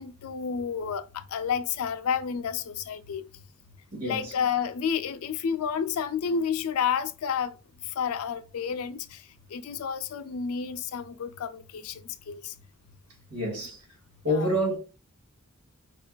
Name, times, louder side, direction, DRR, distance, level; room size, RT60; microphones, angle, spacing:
voice 1, 0.0-3.3 4.0-7.5 8.0-9.1 9.5-11.9 12.3-12.5 14.3-14.5, left 7 dB, 70° left, 0.4 m, -30 dB
voice 2, 3.9-4.3 13.3-13.8 14.2-14.8, equal, 85° right, 1.2 m, -28 dB
4.4 x 2.4 x 2.2 m
head